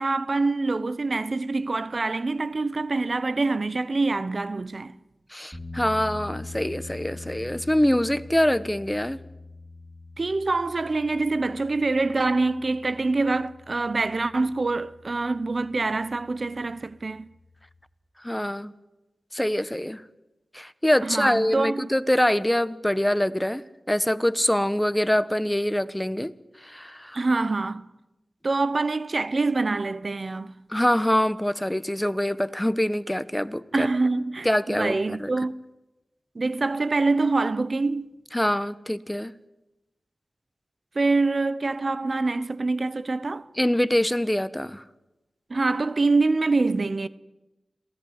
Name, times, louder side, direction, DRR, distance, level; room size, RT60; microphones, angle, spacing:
voice 1, 0.0-5.0 10.2-17.3 21.0-21.9 27.1-27.9 28.4-30.6 33.7-35.6 36.3-38.1 40.9-43.5 45.5-47.1, right 3 dB, 55° right, 0.8 m, -25 dB
voice 2, 5.3-9.2 18.2-18.7 19.3-20.0 20.5-23.6 23.9-26.3 26.6-27.2 30.7-33.9 34.4-35.3 38.3-39.3 43.6-44.8, left 1 dB, 10° left, 1.1 m, -24 dB
sound 1, 5.5-17.8, left 2 dB, 15° right, 5.4 m, -44 dB
27.0 x 17.5 x 9.7 m
cardioid pair, 45°, 0 cm